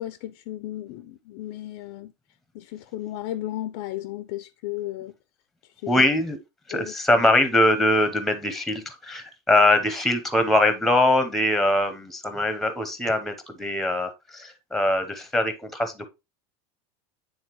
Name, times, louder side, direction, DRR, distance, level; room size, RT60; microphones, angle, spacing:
voice 1, 0.0-2.1 2.5-5.1 5.8-6.1 6.7-7.3, left 14 dB, 60° left, 0.5 m, -34 dB
voice 2, 5.9-6.4 6.7-16.1, left 1 dB, ahead, 0.8 m, -22 dB
8.7 x 3.6 x 3.0 m
supercardioid pair, 135°, 14 cm